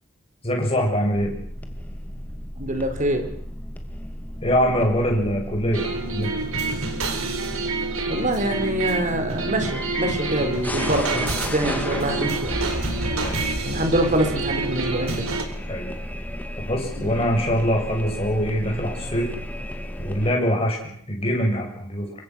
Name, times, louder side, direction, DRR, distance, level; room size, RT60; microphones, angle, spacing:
voice 1, 0.4-1.3 4.4-6.3 11.9-12.0 13.1-13.6 15.7-15.9 16.6-19.3 20.0-20.8 21.1-22.1, equal, 30° left, 1 dB, 7.5 m, -23 dB
sound 1, 1.1-20.3, equal, 10° left, 2.3 m, -33 dB
voice 2, 2.6-3.2 8.0-12.7 13.7-15.3 17.0-17.1, right 1 dB, 35° right, 7 dB, 4.2 m, -25 dB
sound 2, 5.7-15.4, right 3 dB, 90° right, 4.1 m, -28 dB
27.0 x 23.5 x 6.4 m, 0.64 s
head